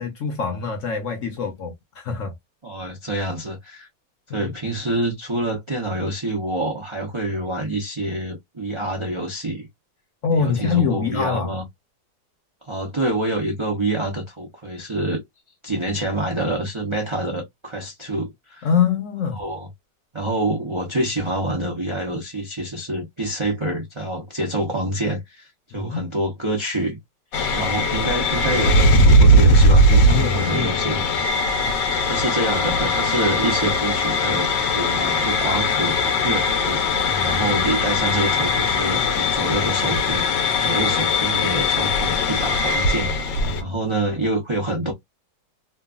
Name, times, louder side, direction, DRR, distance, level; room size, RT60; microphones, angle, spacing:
voice 1, 0.0-2.3 4.3-4.5 10.2-11.5 18.6-19.4 25.7-26.1 29.9-31.2 37.1-37.4 43.4-43.7, left 6 dB, 55° left, 1.0 m, -25 dB
voice 2, 2.6-3.9 4.3-9.7 10.3-11.6 12.6-15.2 15.6-18.7 19.4-19.7 20.1-27.0 27.5-31.0 32.0-36.0 36.2-40.3 40.6-43.3 43.6-44.9, right 1 dB, 40° right, 0.4 m, -26 dB
sound 1, 27.3-43.6, left 1 dB, 85° left, 1.3 m, -19 dB
3.1 x 2.3 x 2.3 m
omnidirectional pair, 1.9 m